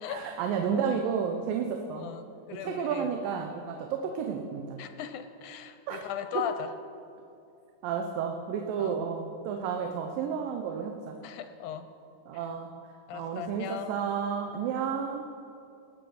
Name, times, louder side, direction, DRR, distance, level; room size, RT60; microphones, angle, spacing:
voice 1, 0.1-2.1 2.5-4.8 5.9-6.0 6.3-6.4 7.8-11.2 12.3-12.7 13.1-15.2, right 7 dB, 80° right, 4 dB, 2.5 m, -31 dB
voice 2, 2.0-3.1 4.8-6.7 8.8-9.0 11.2-11.9 12.3-12.4 13.1-13.9, left 9 dB, 75° left, 9 dB, 1.9 m, -38 dB
19.5 x 7.7 x 6.4 m, 2.6 s
omnidirectional pair, 4.0 m